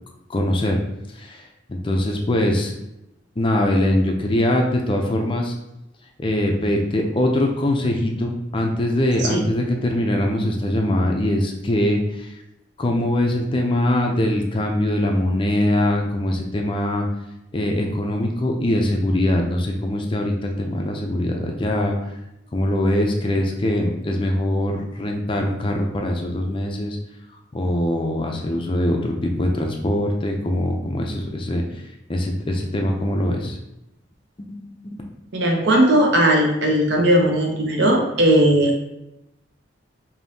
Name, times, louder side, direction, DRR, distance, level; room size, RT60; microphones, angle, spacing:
voice 1, 0.3-0.8 1.1-2.7 3.4-5.5 6.2-12.3 12.8-17.1 17.5-22.0 22.5-27.0 27.5-31.8 32.1-33.6 34.4-34.6 34.8-35.0, left 1 dB, 25° left, 1 dB, 0.4 m, -22 dB
voice 2, 35.3-38.8, right 1 dB, 60° right, 1 dB, 0.8 m, -17 dB
5.2 x 2.7 x 2.7 m, 0.89 s
head